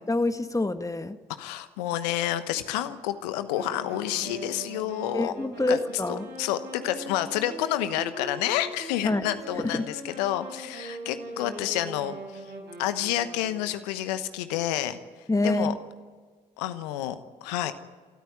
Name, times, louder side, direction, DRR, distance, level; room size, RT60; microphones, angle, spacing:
voice 1, 0.1-1.2 5.1-6.3 9.0-9.2 9.6-9.9 15.3-15.8, left 2 dB, 15° left, 10 dB, 1.5 m, -26 dB
voice 2, 1.4-5.3 5.7-5.8 6.1-12.5 12.8-15.0 15.4-15.7 16.6-17.7, left 12 dB, 75° left, 12 dB, 1.1 m, -29 dB
sound 1, 3.5-13.9, right 2 dB, 55° right, 4.9 m, -41 dB
27.5 x 13.5 x 9.7 m, 1.5 s
figure-of-eight pair, 45°, 21 cm